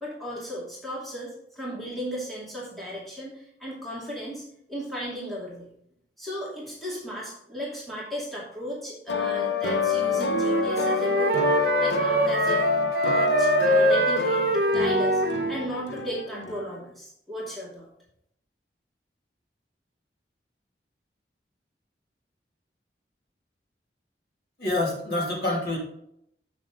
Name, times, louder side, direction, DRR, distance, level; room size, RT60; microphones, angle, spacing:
voice 1, 0.0-5.7 6.2-12.6 13.0-14.4 14.7-15.2 15.5-17.9, equal, ahead, -6 dB, 2.5 m, -35 dB
sound 1, 9.1-16.7, left 3 dB, 85° left, 0.8 m, -27 dB
Wind instrument woodwind instrument, 10.3-15.5, right 1 dB, 60° right, 1.1 m, -24 dB
voice 2, 24.6-25.8, left 2 dB, 60° left, -3 dB, 2.8 m, -26 dB
7.8 x 6.7 x 4.0 m, 0.73 s
head